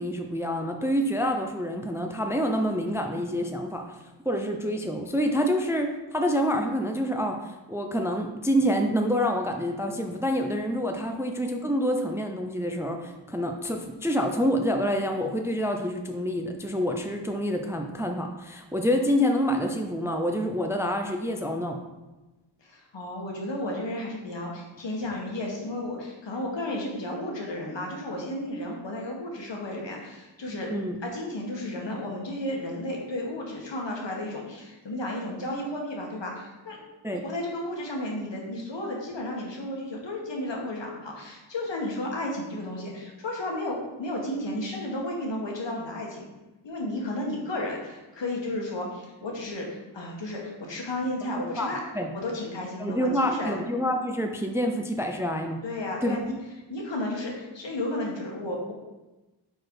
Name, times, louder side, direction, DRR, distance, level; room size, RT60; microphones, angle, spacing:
voice 1, 0.0-4.0 4.2-21.8 30.5-30.9 37.0-37.2 51.6-51.7 51.9-52.1 52.8-55.6 56.0-56.2, equal, 5° right, 4 dB, 0.4 m, -27 dB
voice 2, 22.6-30.7 31.0-36.8 37.2-46.3 46.6-51.8 52.1-53.6 55.6-56.4 56.7-58.7, left 1 dB, 70° left, -1 dB, 1.4 m, -33 dB
4.7 x 4.4 x 4.6 m, 1.1 s
wide cardioid pair, 70°, 46 cm